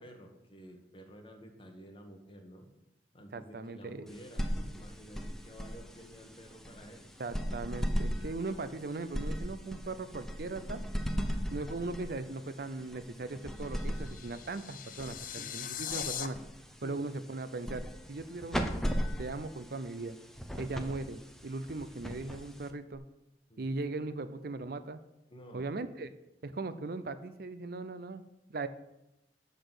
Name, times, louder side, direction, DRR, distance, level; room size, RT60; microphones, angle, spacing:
voice 1, 0.0-2.7 3.1-7.1 15.2-15.6 16.8-17.0 23.5-23.7 25.3-25.8, equal, 30° left, 4 dB, 1.5 m, -51 dB
voice 2, 3.3-4.1 7.2-10.8 11.5-16.4 16.8-20.2 20.6-23.0 23.6-25.0 25.5-26.1 26.4-28.2 28.5-28.7, right 3 dB, 60° right, 11 dB, 0.6 m, -39 dB
sound 1, 4.1-22.9, equal, ahead, 0.8 m, -38 dB
sound 2, 13.6-16.3, left 10 dB, 50° left, 0.6 m, -40 dB
12.0 x 4.1 x 8.0 m, 0.88 s
head